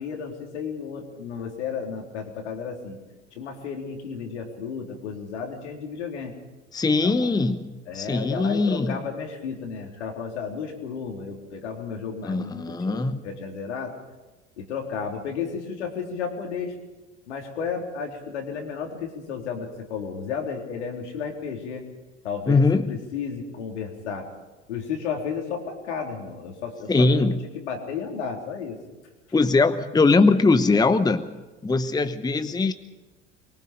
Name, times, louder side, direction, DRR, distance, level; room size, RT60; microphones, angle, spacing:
voice 1, 0.0-3.0 3.3-6.3 7.0-7.3 7.9-14.0 14.6-16.8 17.3-21.8 22.2-24.3 24.7-27.3 27.5-28.8, left 6 dB, 70° left, 2 dB, 4.0 m, -33 dB
voice 2, 6.7-9.0 12.2-13.2 22.5-22.9 26.9-27.4 29.3-31.3 31.6-32.7, left 3 dB, 10° left, 11 dB, 1.1 m, -21 dB
24.0 x 23.0 x 5.3 m, 1.2 s
figure-of-eight pair, 70°, 36 cm